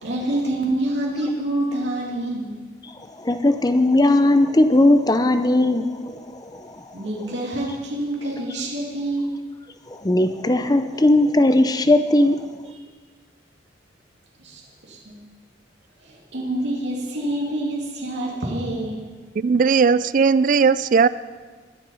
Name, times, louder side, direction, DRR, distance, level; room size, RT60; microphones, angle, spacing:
voice 1, 0.0-2.5 6.9-9.4 14.4-15.2 16.0-19.0, right 1 dB, 70° right, -2 dB, 2.5 m, -27 dB
voice 2, 3.2-5.9 6.5-6.6 10.0-12.4, left 1 dB, 20° left, 10 dB, 0.6 m, -17 dB
voice 3, 19.4-21.1, right 5 dB, 45° right, 18 dB, 0.3 m, -17 dB
21.0 x 7.2 x 5.5 m, 1.4 s
head